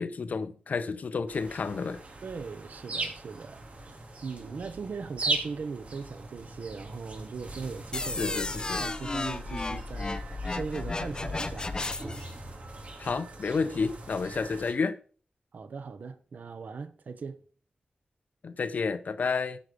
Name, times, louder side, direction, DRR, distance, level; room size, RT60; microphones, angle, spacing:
voice 1, 0.0-2.0 8.2-8.9 13.0-15.0 18.4-19.6, left 4 dB, 70° left, 0.9 m, -30 dB
sound 1, 1.3-14.7, right 2 dB, 50° right, 2.2 m, -40 dB
voice 2, 2.2-8.3 8.8-11.7 15.5-17.4, right 5 dB, 90° right, 1.0 m, -39 dB
sound 2, 7.9-12.3, left 3 dB, 30° left, 0.7 m, -33 dB
sound 3, 11.1-13.6, equal, 10° left, 4.5 m, -46 dB
10.5 x 6.2 x 6.8 m
wide cardioid pair, 135°, 3 cm